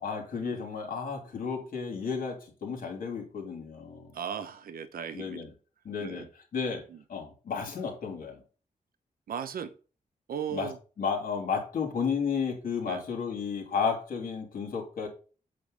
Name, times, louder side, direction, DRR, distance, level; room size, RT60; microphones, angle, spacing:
voice 1, 0.0-4.1 5.1-5.5 5.8-6.3 6.5-8.4 10.5-10.7 11.0-15.1, left 6 dB, 75° left, 2 dB, 2.8 m, -32 dB
voice 2, 4.1-5.4 6.0-6.3 6.9-7.0 9.3-9.7 10.3-10.8 12.9-13.0, right 7 dB, 85° right, 9 dB, 0.9 m, -37 dB
8.6 x 3.3 x 6.4 m, 0.35 s
wide cardioid pair, 145°, 15 cm